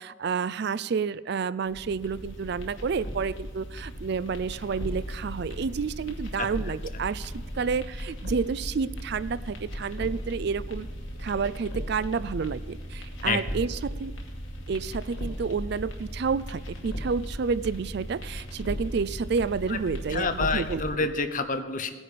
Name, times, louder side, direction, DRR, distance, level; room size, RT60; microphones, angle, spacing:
voice 1, 0.0-10.9 11.2-14.1 14.7-21.1, right 5 dB, 60° right, 17 dB, 0.4 m, -30 dB
sound 1, 1.7-20.9, equal, 85° left, 2.4 m, -37 dB
voice 2, 20.1-21.9, left 4 dB, 45° left, 9 dB, 0.9 m, -28 dB
18.0 x 10.0 x 5.1 m, 1.3 s
head